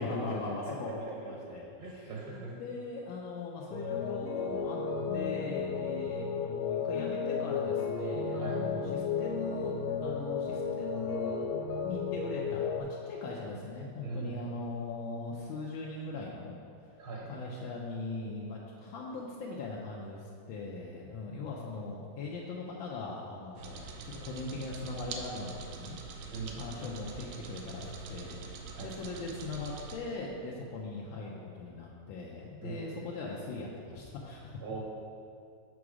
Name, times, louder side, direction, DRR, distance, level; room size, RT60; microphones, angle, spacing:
voice 1, 0.0-4.8 5.1-11.4 11.9-16.5 16.9-17.0 17.3-28.5 28.8-34.6, left 3 dB, 85° left, -3 dB, 1.4 m, -40 dB
voice 2, 0.7-2.6 8.3-8.7 14.0-14.5 17.0-17.3 26.3-26.6 28.7-29.0 32.6-32.9 34.6-34.8, right 4 dB, 70° right, -3 dB, 1.6 m, -41 dB
sound 1, 3.7-12.8, left 5 dB, 70° left, 1.1 m, -33 dB
sound 2, 23.6-30.0, right 4 dB, 85° right, 1.4 m, -44 dB
6.1 x 4.7 x 4.8 m, 2.5 s
omnidirectional pair, 2.1 m